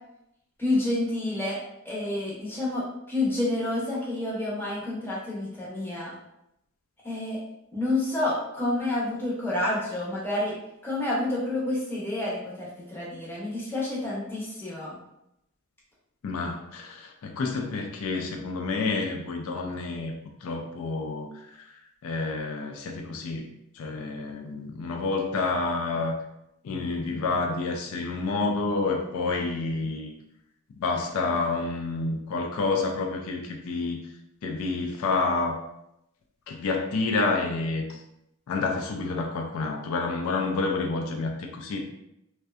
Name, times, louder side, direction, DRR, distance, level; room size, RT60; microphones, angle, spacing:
voice 1, 0.6-1.6 1.8-6.1 7.0-7.4 7.7-10.6 10.8-15.0, left 2 dB, 10° left, -6 dB, 0.6 m, -29 dB
voice 2, 16.2-20.1 20.4-21.7 22.0-23.5 23.7-26.1 26.6-30.1 30.8-34.0 34.4-35.6 36.5-38.0 38.5-41.9, left 3 dB, 70° left, 3 dB, 0.3 m, -29 dB
2.5 x 2.1 x 2.3 m, 0.82 s
head